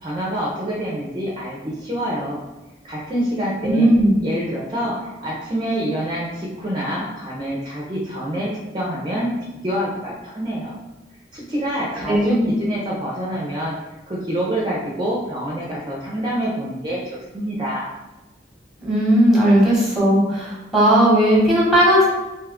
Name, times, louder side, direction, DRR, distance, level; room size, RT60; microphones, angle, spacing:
voice 1, 0.0-2.4 2.8-3.9 4.2-9.3 9.6-10.7 11.3-13.7 14.1-17.0 17.3-17.9, equal, 25° right, -4 dB, 0.5 m, -26 dB
voice 2, 3.7-4.1 12.1-12.5 18.8-22.1, right 1 dB, ahead, -6 dB, 0.9 m, -16 dB
2.7 x 2.3 x 3.4 m, 1.1 s
head